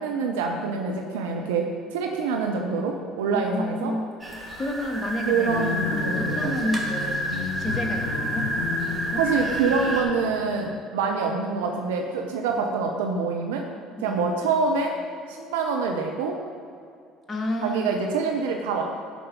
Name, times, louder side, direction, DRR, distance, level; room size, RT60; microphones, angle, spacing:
voice 1, 0.0-3.9 5.3-6.5 9.2-13.6 14.0-14.9 15.3-16.4 17.6-18.8, right 4 dB, 70° right, 2 dB, 0.9 m, -26 dB
voice 2, 3.3-4.1 4.6-5.6 6.0-7.2 7.6-8.5 8.9-9.2 14.0-14.2 17.3-17.8, left 1 dB, 30° left, 2 dB, 2.1 m, -30 dB
sound 1, 4.2-10.0, right 1 dB, 15° right, 2.6 m, -30 dB
sound 2, 5.5-10.8, left 6 dB, 80° left, 1.0 m, -33 dB
11.5 x 5.2 x 8.1 m, 2.4 s
figure-of-eight pair, 60°, 0 cm